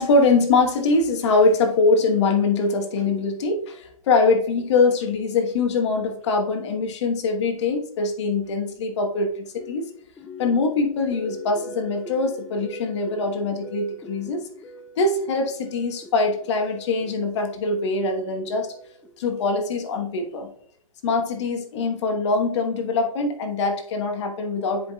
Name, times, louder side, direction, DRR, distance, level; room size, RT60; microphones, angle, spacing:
voice 1, 0.0-9.9 10.4-14.4 15.0-18.9 19.2-20.5 21.0-24.9, left 3 dB, 55° left, 4 dB, 1.2 m, -23 dB
sound 1, 9.6-19.6, left 1 dB, 5° left, 0.4 m, -43 dB
10.0 x 4.9 x 2.3 m, 0.63 s
hypercardioid pair, 135°, 18 cm